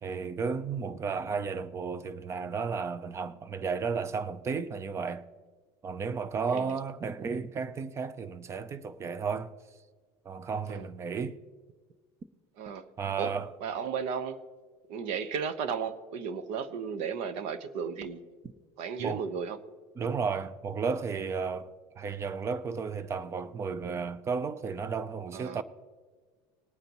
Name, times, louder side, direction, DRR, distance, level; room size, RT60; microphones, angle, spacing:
voice 1, 0.0-5.2 5.8-9.5 10.3-11.4 13.0-13.5 19.0-19.2 20.0-25.6, right 5 dB, 25° right, 0.6 m, -33 dB
voice 2, 12.6-12.9 13.2-13.3 13.6-14.4 14.9-18.2 18.8-19.6 25.3-25.6, right 6 dB, 65° right, 1.0 m, -34 dB
20.0 x 9.2 x 3.0 m
cardioid pair, 140°, 12 cm